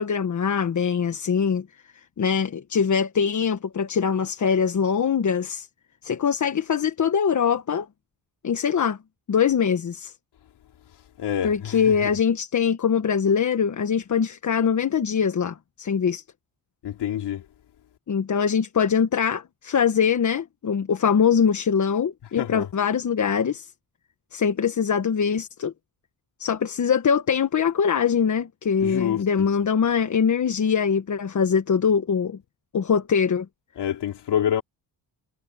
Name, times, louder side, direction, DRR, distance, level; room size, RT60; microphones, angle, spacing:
voice 1, 0.0-1.7 2.2-5.7 6.0-7.9 8.4-9.0 9.3-10.1 11.4-16.2 18.1-23.7 24.3-25.7 26.4-32.4 32.7-33.5, left 7 dB, 45° left, 1.5 m, -23 dB
voice 2, 11.2-11.8 12.0-12.1 16.8-17.4 22.4-22.7 28.8-29.2 33.8-34.6, left 10 dB, 85° left, 3.6 m, -27 dB
cardioid pair, 100°, 40 cm